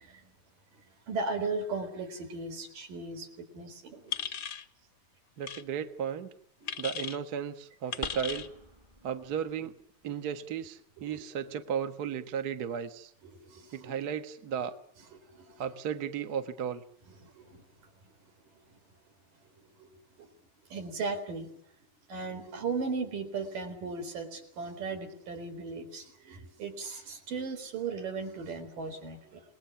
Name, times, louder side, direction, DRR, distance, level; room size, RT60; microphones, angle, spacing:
voice 1, 1.1-3.3 3.5-4.1 11.0-11.2 13.2-13.9 14.5-14.6 15.1-15.6 17.1-17.6 19.8-19.9 20.7-21.5 22.1-29.4, right 4 dB, 75° right, 5.5 m, -37 dB
sound 1, 4.1-4.6 5.4-5.6 6.7-7.2 7.9-8.5, left 8 dB, 65° left, 1.0 m, -36 dB
voice 2, 5.4-6.3 6.8-8.5 9.0-9.7 10.0-13.1 13.7-14.7 15.6-16.8, right 8 dB, 45° right, 1.2 m, -34 dB
sound 2, 8.0-10.0 10.3-10.4 11.1-12.0, right 1 dB, 15° right, 1.3 m, -45 dB
28.5 x 20.5 x 7.0 m
omnidirectional pair, 3.9 m